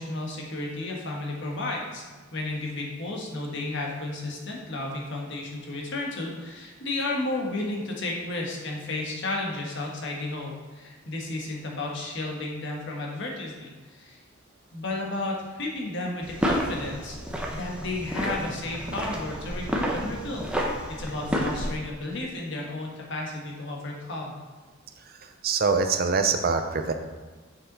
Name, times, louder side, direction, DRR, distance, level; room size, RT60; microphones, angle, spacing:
voice 1, 0.0-2.0 2.3-14.2 14.7-17.2 17.5-20.5 20.9-24.4, left 2 dB, 65° left, -1 dB, 1.5 m, -33 dB
sound 1, 16.2-21.7, equal, 5° right, 0.8 m, -30 dB
voice 2, 25.4-26.9, right 4 dB, 50° right, 7 dB, 0.6 m, -24 dB
6.7 x 5.7 x 4.1 m, 1.3 s
head